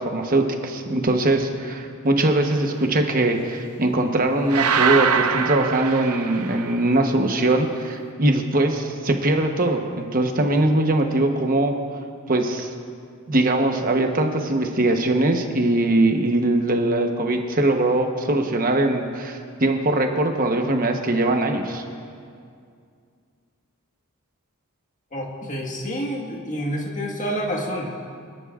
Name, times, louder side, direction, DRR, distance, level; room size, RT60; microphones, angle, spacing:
voice 1, 0.0-11.7 12.3-12.7 13.3-21.8, right 2 dB, 40° right, 4 dB, 1.0 m, -21 dB
sound 1, 4.5-6.8, right 6 dB, 90° right, 0.6 m, -23 dB
voice 2, 25.1-27.9, equal, 35° left, -1 dB, 1.6 m, -28 dB
25.5 x 10.5 x 2.5 m, 2.3 s
head